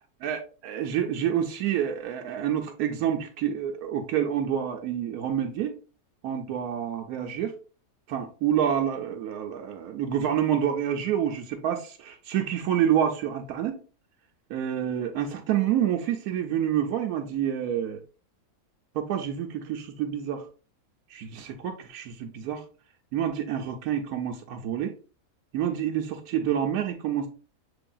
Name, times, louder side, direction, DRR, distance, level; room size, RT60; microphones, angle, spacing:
voice 1, 0.2-5.8 6.2-7.5 8.1-13.8 14.5-18.0 18.9-20.4 21.1-22.6 23.1-24.9 25.5-27.3, right 9 dB, 85° right, 1.1 m, -28 dB
6.8 x 3.2 x 2.3 m
omnidirectional pair, 1.5 m